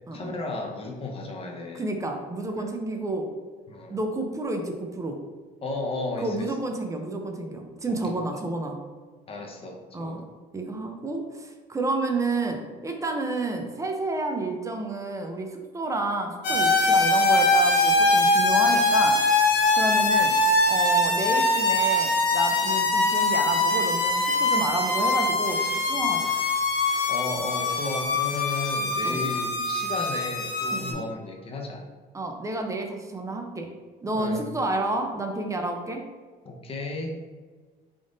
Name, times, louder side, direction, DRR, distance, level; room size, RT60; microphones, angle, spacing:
voice 1, 0.1-1.9 2.6-2.7 3.7-4.0 5.6-6.5 7.9-8.0 9.3-10.2 27.1-31.8 34.1-34.4 36.4-37.1, left 2 dB, 35° left, 1 dB, 0.7 m, -34 dB
voice 2, 1.7-3.3 3.9-5.2 6.2-8.8 9.9-10.2 10.5-19.2 19.8-20.3 20.7-26.4 29.0-29.2 30.7-31.0 32.1-33.7 34.0-36.0, right 2 dB, 20° right, 3 dB, 0.5 m, -30 dB
sound 1, 16.4-30.9, left 2 dB, 85° left, 0.8 m, -22 dB
3.6 x 2.5 x 3.8 m, 1.4 s
cardioid pair, 110°, 17 cm